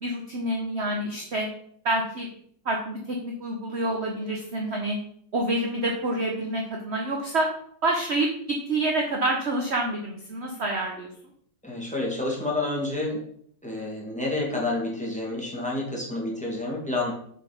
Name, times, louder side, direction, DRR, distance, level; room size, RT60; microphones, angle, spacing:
voice 1, 0.0-1.5 1.8-2.3 2.6-5.0 5.3-7.5 7.8-11.1, right 1 dB, 40° right, 1 dB, 1.1 m, -27 dB
voice 2, 11.6-13.2 13.6-17.1, left 2 dB, 5° left, -2 dB, 2.3 m, -29 dB
7.5 x 5.3 x 5.2 m, 0.64 s
omnidirectional pair, 2.1 m